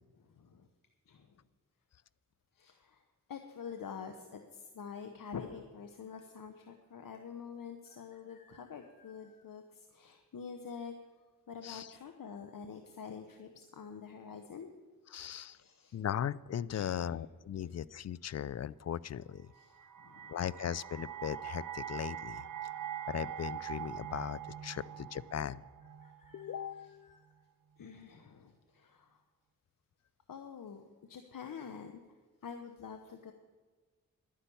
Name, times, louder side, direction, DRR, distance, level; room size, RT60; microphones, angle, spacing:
voice 1, 0.2-0.7 1.1-1.4 2.5-3.0 3.3-10.9 11.5-14.7 15.4-16.0 16.7-17.2 19.5-20.4 24.8-24.9 26.0-27.2 27.8-29.2 30.3-32.0 32.4-33.3, left 6 dB, 70° left, 6 dB, 1.0 m, -47 dB
voice 2, 15.1-15.6 15.9-19.5 20.3-22.4 23.1-25.6 26.3-27.1, left 9 dB, 50° left, 20 dB, 0.5 m, -38 dB
sound 1, 19.6-26.7, right 10 dB, 60° right, 0.9 m, -43 dB
11.5 x 10.0 x 7.0 m, 1.4 s
cardioid pair, 55°, 35 cm